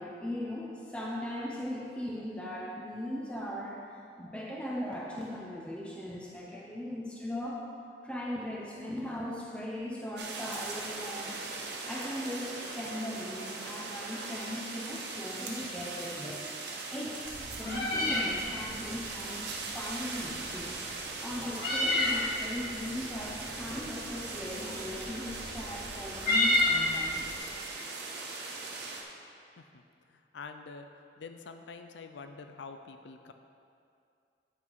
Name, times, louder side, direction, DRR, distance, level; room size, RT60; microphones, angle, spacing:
voice 1, 0.0-3.8 4.2-7.6 8.0-11.5 11.8-20.8 21.2-27.3, left 1 dB, 5° left, -4 dB, 0.7 m, -39 dB
sound 1, 10.2-29.0, right 3 dB, 80° right, 1.0 m, -40 dB
Meow, 17.2-27.4, left 1 dB, 60° left, 2.1 m, -32 dB
voice 2, 30.1-30.9 31.2-33.3, left 4 dB, 85° left, 7 dB, 0.5 m, -46 dB
9.5 x 5.8 x 4.7 m, 2.4 s
head